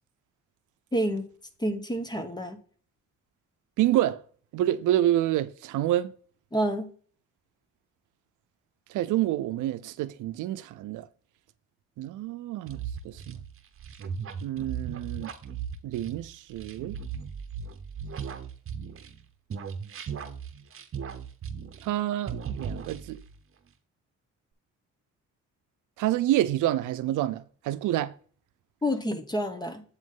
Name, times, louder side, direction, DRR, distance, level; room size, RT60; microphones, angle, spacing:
voice 1, 0.9-1.2 1.6-2.6 6.5-6.9 28.8-29.8, equal, 15° left, 1.3 m, -28 dB
voice 2, 3.8-4.2 4.5-6.1 8.9-11.1 12.0-13.4 14.4-15.3 15.8-17.0 21.8-23.2 26.0-28.1, right 13 dB, 85° right, 0.6 m, -28 dB
sound 1, 12.7-19.2 19.5-22.0 22.3-23.3, right 7 dB, 45° right, 1.0 m, -37 dB
8.2 x 3.1 x 5.3 m
cardioid pair, 90°, 30 cm